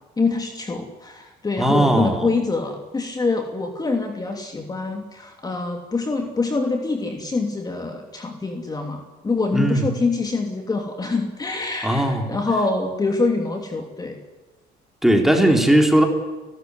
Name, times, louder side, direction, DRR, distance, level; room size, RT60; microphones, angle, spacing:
voice 1, 0.2-14.2, left 3 dB, 25° left, 3 dB, 3.0 m, -25 dB
voice 2, 1.6-2.3 9.5-9.9 11.8-12.2 15.0-16.1, right 1 dB, ahead, 3 dB, 4.1 m, -17 dB
30.0 x 14.0 x 9.9 m, 1.2 s
cardioid pair, 110°, 17 cm